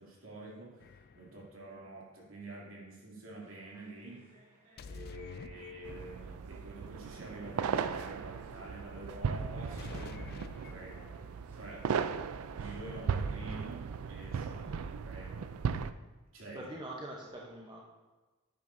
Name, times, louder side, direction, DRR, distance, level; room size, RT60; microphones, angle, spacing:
voice 1, 0.0-4.2 4.8-11.9 12.6-15.5 16.3-16.7, right 2 dB, 65° right, -4 dB, 2.7 m, -48 dB
sound 1, 0.8-1.5 4.8-6.3 9.8-11.4, left 4 dB, 45° left, 0.3 m, -48 dB
sound 2, 3.4-10.4 10.9-12.8, right 1 dB, 40° right, 2.9 m, -62 dB
sound 3, 5.8-15.9, right 6 dB, 85° right, 0.4 m, -37 dB
voice 2, 14.5-14.9 16.5-17.8, right 1 dB, 20° right, -2 dB, 0.8 m, -45 dB
10.5 x 9.2 x 2.6 m, 1.2 s
head